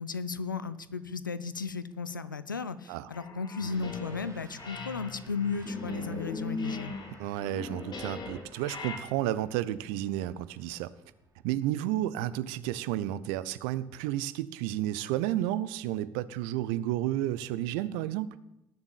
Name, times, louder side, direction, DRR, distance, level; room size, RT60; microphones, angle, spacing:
voice 1, 0.0-7.0, left 5 dB, 85° left, 0.6 m, -35 dB
sound 1, 3.1-4.3 4.6-9.0, left 3 dB, 45° left, 2.5 m, -39 dB
Truck / Accelerating revving vroom, 3.6-11.6, left 1 dB, 30° right, 4.0 m, -52 dB
voice 2, 7.2-10.9 11.4-18.4, right 13 dB, 65° right, 0.7 m, -31 dB
19.5 x 7.3 x 8.9 m
figure-of-eight pair, 50°, 10 cm